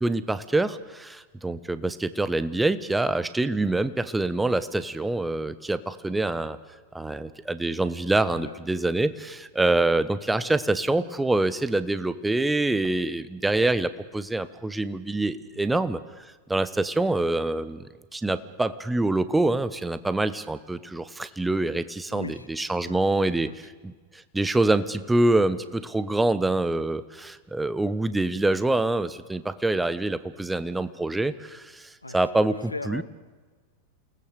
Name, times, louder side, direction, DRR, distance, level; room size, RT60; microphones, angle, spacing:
voice 1, 0.0-6.6 6.9-16.0 16.5-23.5 23.8-33.0, right 2 dB, 5° right, 13 dB, 1.1 m, -25 dB
voice 2, 15.5-15.8 22.1-22.5 22.8-23.1 23.4-23.6 32.0-32.2 32.5-33.0, left 3 dB, 80° left, 14 dB, 0.8 m, -38 dB
28.5 x 18.5 x 6.8 m, 1.4 s
figure-of-eight pair, 90°, 0 cm